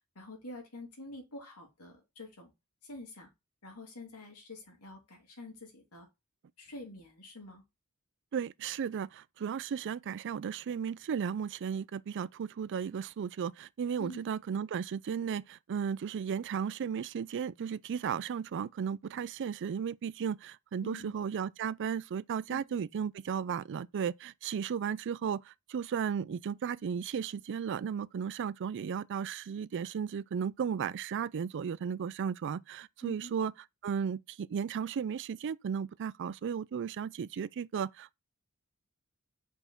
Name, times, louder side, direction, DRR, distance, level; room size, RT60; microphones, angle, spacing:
voice 1, 0.1-2.5 2.8-3.3 3.6-6.1 6.6-7.6 14.0-14.2 20.8-21.1 22.5-22.6 33.0-33.3, left 1 dB, 85° left, 2.7 m, -47 dB
voice 2, 8.3-33.5 33.8-38.2, right 7 dB, 55° right, 0.4 m, -35 dB
5.5 x 4.4 x 4.5 m
head